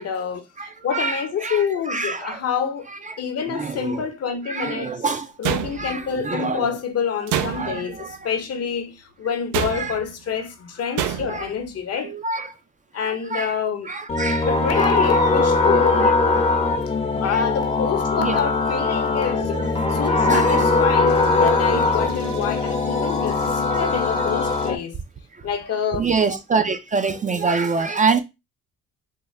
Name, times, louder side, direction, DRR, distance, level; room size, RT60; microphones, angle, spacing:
voice 1, 0.0-0.5 0.8-2.9 3.2-4.9 5.4-12.2 12.9-14.0 14.4-16.1 17.2-19.6 19.9-25.0 25.4-26.1, left 7 dB, 55° left, 0.8 m, -27 dB
voice 2, 0.6-2.4 2.9-4.1 4.4-5.3 5.7-6.7 7.5-8.3 9.7-10.0 11.2-11.5 11.9-12.6 12.9-13.6 13.8-15.3 15.8-16.5 17.2-17.5 18.2-18.5 19.2-19.7 20.2-20.7 21.3-21.5 22.2-22.4 23.0-23.2 23.6-23.9 24.1-24.2 25.3-25.5 25.9-28.2, right 4 dB, 25° right, 0.4 m, -27 dB
sound 1, 5.4-6.2 7.3-8.0 9.5-10.1 11.0-11.5, right 9 dB, 85° right, 0.5 m, -26 dB
sound 2, 14.1-24.7, left 3 dB, 20° left, 0.6 m, -20 dB
sound 3, 21.1-24.8, right 5 dB, 55° right, 1.1 m, -43 dB
3.6 x 2.1 x 3.1 m
cardioid pair, 90°, 30 cm